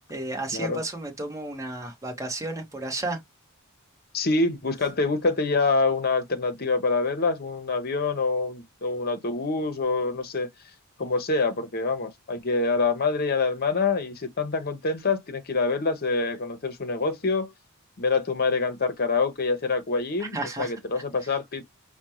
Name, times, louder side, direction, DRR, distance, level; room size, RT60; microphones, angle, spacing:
voice 1, 0.1-3.2 20.2-20.7, right 2 dB, 15° right, 1.0 m, -32 dB
voice 2, 4.1-10.5 11.0-17.5 18.0-21.6, left 3 dB, 45° left, 0.8 m, -26 dB
5.0 x 2.2 x 2.9 m
head